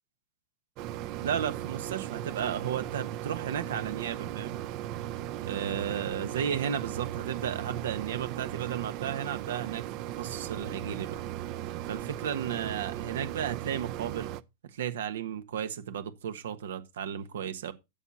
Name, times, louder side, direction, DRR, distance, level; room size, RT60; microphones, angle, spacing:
sound 1, 0.8-14.4, right 13 dB, 40° right, 0.5 m, -37 dB
voice 1, 1.2-4.6 5.4-11.2 11.9-14.4 14.7-17.7, right 8 dB, 85° right, 1.3 m, -34 dB
12.5 x 7.2 x 4.2 m
supercardioid pair, 155°, 0 cm